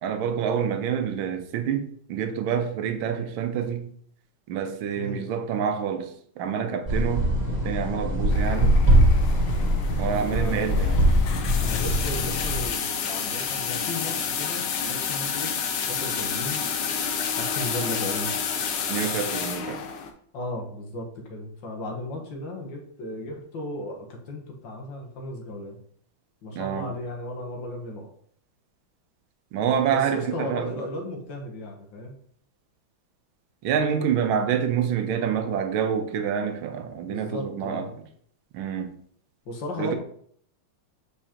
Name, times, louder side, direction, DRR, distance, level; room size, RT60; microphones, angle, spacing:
voice 1, 0.0-3.9 4.5-8.8 10.0-11.0 18.9-19.8 26.5-26.9 29.5-30.8 33.6-37.9 38.5-39.0 39.8-40.0, right 8 dB, 80° right, 1.6 m, -27 dB
voice 2, 5.0-5.3 10.1-11.1 11.6-15.5 15.8-16.6 17.4-18.3 20.3-25.8 26.4-28.1 29.9-32.2 37.1-37.9 39.4-40.0, left 1 dB, 65° left, 1.7 m, -35 dB
sound 1, 6.9-12.6, equal, 25° right, 2.1 m, -22 dB
sound 2, 8.3-20.1, left 6 dB, 80° left, 1.6 m, -30 dB
7.0 x 4.9 x 2.9 m
omnidirectional pair, 2.2 m